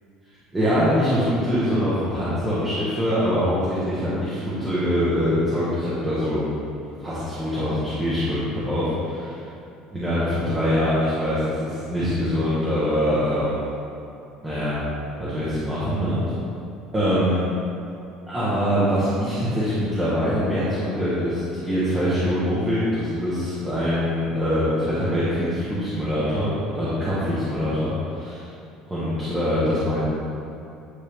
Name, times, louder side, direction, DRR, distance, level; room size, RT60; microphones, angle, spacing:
voice 1, 0.5-6.4 7.0-8.9 9.9-13.6 14.4-14.8 15.2-16.2 16.9-17.4 18.3-28.5 28.9-30.0, equal, 10° right, -11 dB, 1.1 m, -23 dB
9.6 x 3.5 x 3.5 m, 2.7 s
cardioid pair, 175°, 0 cm